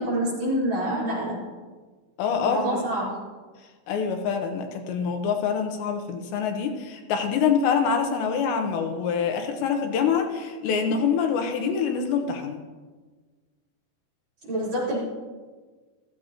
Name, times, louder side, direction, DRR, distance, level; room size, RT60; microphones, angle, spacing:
voice 1, 0.0-1.4 2.4-3.2 14.5-15.0, right 1 dB, 40° right, -8 dB, 5.1 m, -26 dB
voice 2, 2.2-2.9 3.9-12.6, left 6 dB, 80° left, 5 dB, 3.1 m, -25 dB
15.5 x 14.5 x 3.0 m, 1.4 s
omnidirectional pair, 5.2 m